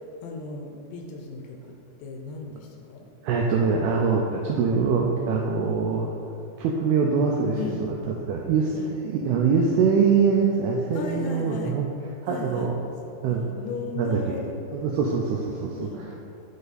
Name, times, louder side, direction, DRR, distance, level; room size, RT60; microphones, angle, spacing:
voice 1, 0.2-1.6 2.0-3.0 7.6-7.8 8.7-8.9 10.9-11.8 12.3-12.7 13.3-14.5 15.7-16.1, left 4 dB, 80° left, 1 dB, 2.6 m, -36 dB
voice 2, 3.2-6.1 6.6-8.0 8.3-11.9 12.2-12.8 13.2-13.5 14.0-14.4 14.7-16.2, right 5 dB, 90° right, -1 dB, 2.3 m, -23 dB
9.1 x 5.4 x 4.1 m, 2.8 s
omnidirectional pair, 5.2 m